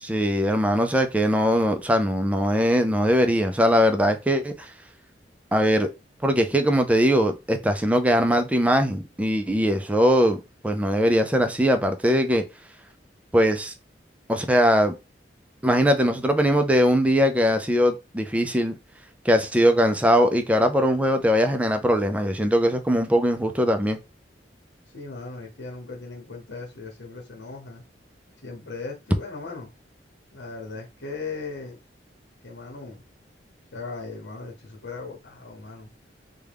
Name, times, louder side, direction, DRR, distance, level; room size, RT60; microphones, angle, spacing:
voice 1, 0.0-4.7 5.5-5.9 6.2-12.4 13.3-13.7 14.3-14.9 15.6-18.8 19.3-24.0, equal, 10° right, 0.4 m, -21 dB
voice 2, 24.9-27.8 28.4-29.7 30.3-31.8 32.4-33.0 33.7-35.9, left 3 dB, 85° left, 1.0 m, -38 dB
3.4 x 2.2 x 3.4 m
head